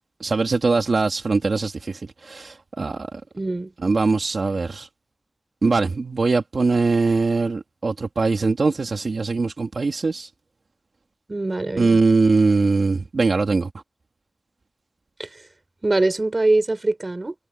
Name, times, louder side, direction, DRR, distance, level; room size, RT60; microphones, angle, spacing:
voice 1, 0.2-3.2 3.8-4.9 5.6-10.3 11.8-13.7, right 3 dB, 80° right, 2.4 m, -21 dB
voice 2, 3.4-3.7 11.3-12.0 15.2-15.3 15.8-17.3, right 2 dB, 40° right, 4.2 m, -22 dB
wide cardioid pair, 70°, 0 cm